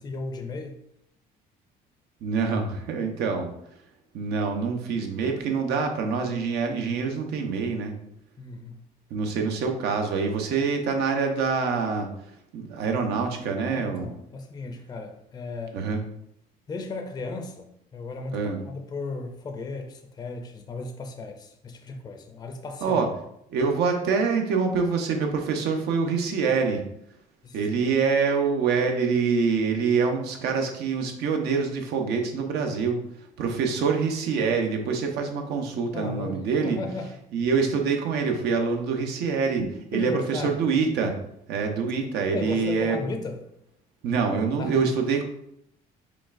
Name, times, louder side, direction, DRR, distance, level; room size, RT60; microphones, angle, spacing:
voice 1, 0.0-0.8 8.4-8.9 13.7-15.8 16.7-23.0 27.4-27.9 35.9-37.1 39.9-40.6 42.3-43.4 44.6-44.9, left 3 dB, 25° left, 5 dB, 0.4 m, -35 dB
voice 2, 2.2-3.5 4.1-7.9 9.1-12.1 12.5-14.1 15.7-16.0 18.3-18.6 22.8-23.1 23.5-26.8 27.5-33.0 33.4-36.8 37.3-41.2 41.5-43.0 44.0-45.2, right 5 dB, 80° right, 4 dB, 0.8 m, -25 dB
5.1 x 3.4 x 2.5 m, 0.75 s
cardioid pair, 110°, 17 cm